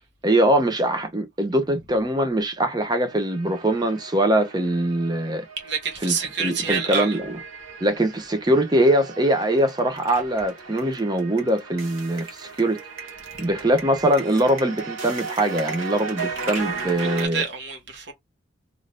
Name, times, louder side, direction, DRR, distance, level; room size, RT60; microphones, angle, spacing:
voice 1, 0.2-5.4 6.0-7.4 7.8-12.8 13.4-17.4, right 1 dB, 20° right, 0.6 m, -22 dB
sound 1, 3.0-17.3, right 4 dB, 90° right, 1.1 m, -36 dB
voice 2, 5.6-7.2 17.0-18.1, right 6 dB, 60° right, 1.0 m, -27 dB
2.6 x 2.5 x 3.3 m
head